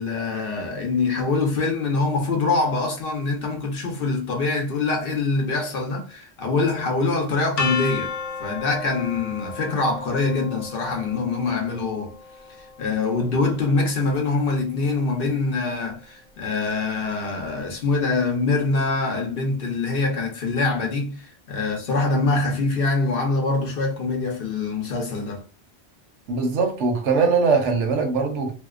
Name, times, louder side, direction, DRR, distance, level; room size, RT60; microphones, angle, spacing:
voice 1, 0.0-8.1 8.4-12.1 12.8-21.2 21.5-25.4, left 3 dB, 55° left, 0.9 m, -24 dB
sound 1, 7.6-13.5, left 5 dB, 90° left, 1.0 m, -33 dB
voice 2, 26.3-28.5, right 4 dB, 80° right, 1.0 m, -21 dB
2.7 x 2.0 x 2.3 m
omnidirectional pair, 1.2 m